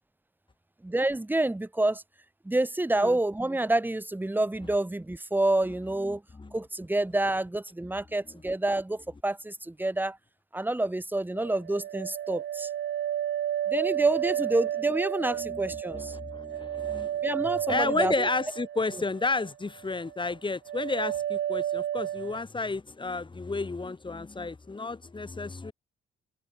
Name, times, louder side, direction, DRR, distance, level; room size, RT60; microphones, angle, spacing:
voice 1, 0.8-2.0 2.4-6.2 6.5-10.2 10.5-12.7 13.7-16.2 17.2-18.3, right 2 dB, 10° right, 2.7 m, -28 dB
voice 2, 6.0-6.6 15.3-25.7, left 3 dB, 25° left, 8.0 m, -32 dB
sound 1, 11.4-19.5 19.8-20.3 20.7-22.4, right 11 dB, 65° right, 1.3 m, -32 dB
cardioid pair, 90°, 20 cm